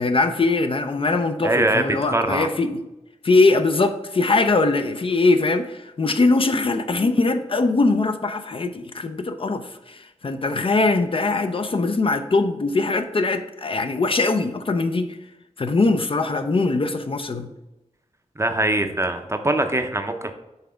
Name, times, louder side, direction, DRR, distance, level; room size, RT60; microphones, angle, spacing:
voice 1, 0.0-2.8 3.2-15.2 15.6-17.5, left 3 dB, 45° left, 8 dB, 0.5 m, -21 dB
voice 2, 1.4-1.8 2.1-2.5 18.4-20.3, right 1 dB, 20° right, 6 dB, 0.6 m, -22 dB
5.6 x 3.4 x 4.9 m, 0.98 s
wide cardioid pair, 95°, 13 cm